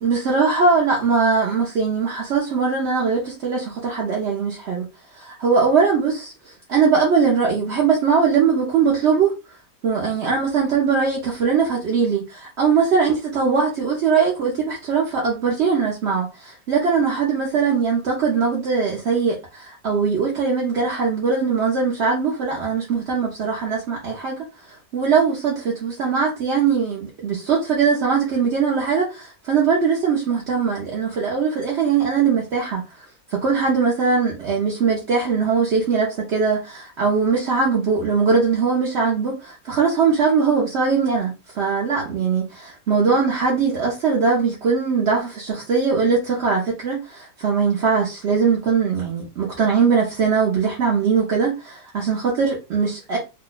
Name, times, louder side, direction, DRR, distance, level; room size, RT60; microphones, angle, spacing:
voice 1, 0.0-4.9 5.1-9.3 9.8-24.4 24.6-32.8 33.3-53.2, right 5 dB, 55° right, 0.8 m, -21 dB
2.9 x 2.2 x 3.9 m
omnidirectional pair, 1.8 m